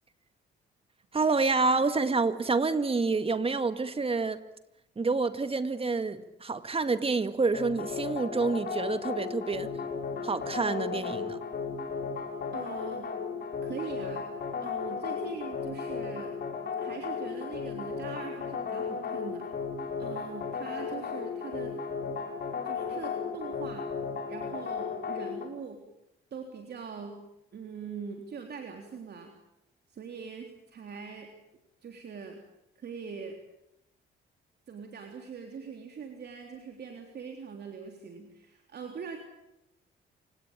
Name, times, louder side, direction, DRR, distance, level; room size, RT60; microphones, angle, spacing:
voice 1, 1.1-4.4 5.0-9.7 10.2-11.4, right 4 dB, 30° right, 2.0 m, -28 dB
sound 1, 7.5-25.4, left 5 dB, 55° left, 5.7 m, -35 dB
voice 2, 12.5-13.1 13.6-14.3 14.6-16.3 16.8-19.5 20.0-21.8 22.6-23.9 24.3-25.8 26.3-27.2 27.5-29.3 29.9-31.3 31.8-32.4 32.8-33.4 34.7-39.2, right 6 dB, 55° right, 3.5 m, -42 dB
28.5 x 17.5 x 8.9 m
cardioid pair, 90°, 20 cm